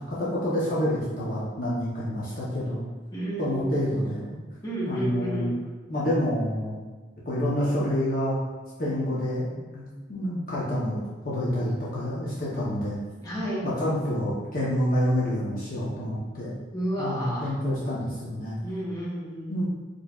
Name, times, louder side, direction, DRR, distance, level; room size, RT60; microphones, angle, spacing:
voice 1, 0.0-2.8 3.4-4.2 4.8-5.5 5.9-6.8 7.3-8.4 8.8-13.0 13.6-16.5 17.0-18.6 19.5-19.6, equal, 45° left, -8 dB, 0.7 m, -28 dB
voice 2, 3.1-3.9 4.6-5.5 13.2-13.6 16.7-17.5 18.6-19.6, right 1 dB, 20° left, -7 dB, 1.0 m, -31 dB
4.6 x 3.1 x 2.3 m, 1.3 s
head